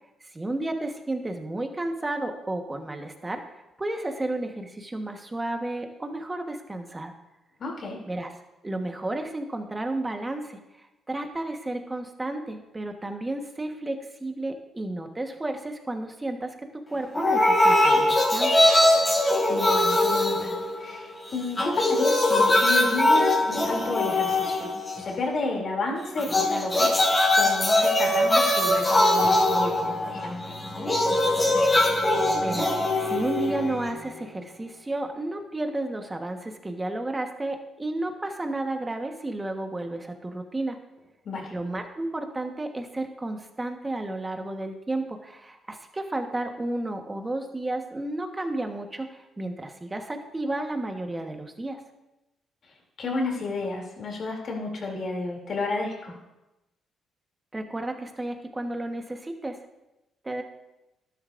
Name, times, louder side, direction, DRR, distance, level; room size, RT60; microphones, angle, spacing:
voice 1, 0.2-3.4 3.8-7.1 8.0-8.3 8.6-10.6 11.1-18.5 32.4-40.8 41.5-51.8 57.5-59.6 60.2-60.4, right 2 dB, 20° right, 5 dB, 1.3 m, -32 dB
voice 2, 7.6-8.0 19.5-24.7 25.0-27.0 27.4-30.6 41.2-41.5 53.0-56.1, left 3 dB, 55° left, 0 dB, 2.9 m, -31 dB
sound 1, 17.1-21.1 21.4-25.2 26.2-34.2, left 1 dB, 25° left, 2.8 m, -22 dB
12.5 x 10.5 x 2.6 m, 0.99 s
cardioid pair, 90°, 0 cm